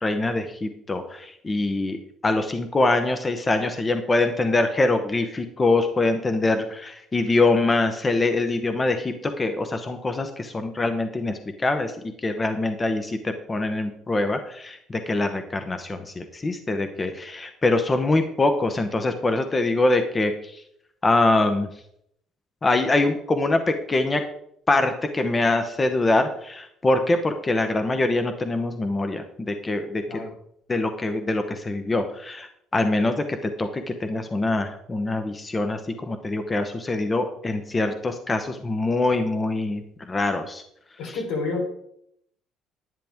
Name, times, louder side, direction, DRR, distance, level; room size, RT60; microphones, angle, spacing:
voice 1, 0.0-2.0 2.2-20.6 21.0-21.7 22.6-24.2 24.7-30.0 30.7-40.6 41.0-41.2, left 2 dB, 20° left, 7 dB, 0.9 m, -24 dB
voice 2, 41.0-41.7, left 3 dB, 80° left, 0 dB, 3.7 m, -28 dB
10.5 x 10.0 x 3.5 m, 0.72 s
cardioid pair, 140°, 0 cm